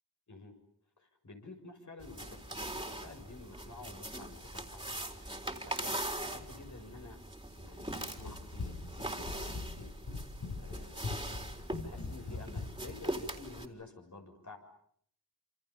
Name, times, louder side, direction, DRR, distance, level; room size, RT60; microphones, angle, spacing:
voice 1, 1.0-7.2 7.6-14.6, left 3 dB, 50° left, 4 dB, 6.7 m, -51 dB
sound 1, 2.0-13.6, right 1 dB, 10° right, 4.0 m, -41 dB
Run, 7.8-13.0, left 3 dB, 85° left, 7.6 m, -41 dB
28.0 x 27.5 x 7.2 m, 0.65 s
wide cardioid pair, 75°, 37 cm